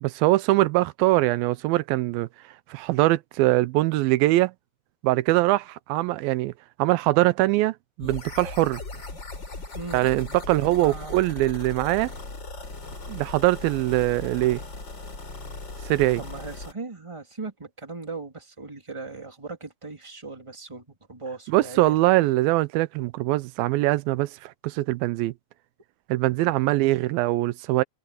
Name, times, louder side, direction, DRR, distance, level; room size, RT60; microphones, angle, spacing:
voice 1, 0.0-2.3 2.7-4.5 5.0-6.5 6.8-8.8 9.9-12.1 13.1-14.6 15.8-16.2 21.5-25.3 26.1-27.8, right 18 dB, 85° right, 2.4 m, -22 dB
sound 1, 8.0-16.7, left 3 dB, 30° left, 4.8 m, -38 dB
voice 2, 9.7-11.2 16.2-22.0 26.4-26.9, right 3 dB, 10° right, 2.9 m, -39 dB
omnidirectional pair, 4.2 m